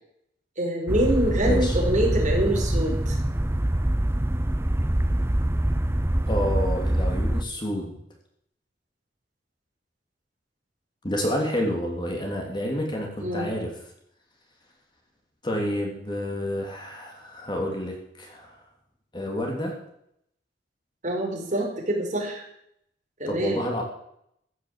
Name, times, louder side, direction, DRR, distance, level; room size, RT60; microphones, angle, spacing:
voice 1, 0.6-3.2 13.2-13.5 21.0-22.4 23.2-23.6, right 1 dB, 40° right, -1 dB, 5.1 m, -25 dB
sound 1, 0.9-7.4, right 1 dB, 15° right, 0.6 m, -24 dB
voice 2, 1.4-1.7 6.3-7.9 11.0-13.7 15.4-18.5 19.1-19.7 23.3-23.8, equal, 25° left, 1 dB, 3.0 m, -29 dB
15.0 x 9.5 x 7.6 m, 0.74 s
head